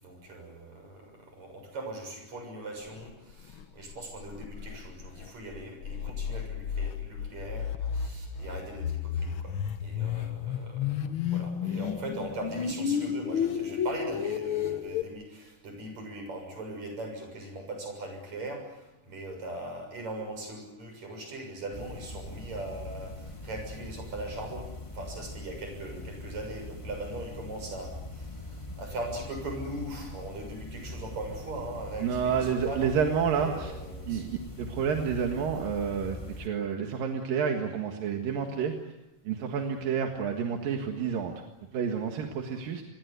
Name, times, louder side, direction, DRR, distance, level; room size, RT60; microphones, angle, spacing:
voice 1, 0.0-9.5 9.8-24.7 24.9-32.9 33.3-34.2, right 2 dB, 55° right, 4 dB, 8.1 m, -40 dB
sound 1, 3.0-3.1 3.5-3.6 3.9-4.0 4.2-15.0, left 8 dB, 70° left, 1.2 m, -32 dB
sound 2, 21.7-36.5, left 2 dB, 10° left, 1.8 m, -42 dB
voice 2, 32.0-33.7 34.1-38.7 39.3-41.3 41.7-42.8, right 7 dB, 85° right, 3 dB, 3.5 m, -29 dB
26.5 x 21.5 x 8.2 m, 0.98 s
omnidirectional pair, 3.9 m